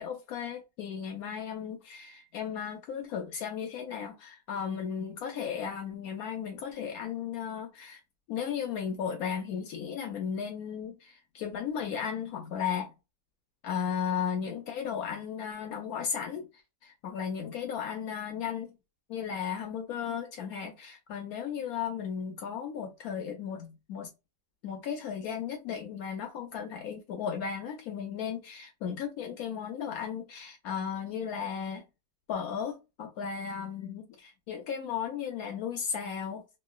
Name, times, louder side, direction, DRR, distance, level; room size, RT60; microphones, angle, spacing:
voice 1, 0.0-8.0 8.3-12.9 13.6-16.5 16.8-18.7 19.1-24.1 24.6-31.8 32.3-36.6, left 7 dB, 70° left, 0.9 m, -35 dB
3.1 x 2.4 x 2.3 m
omnidirectional pair, 1.9 m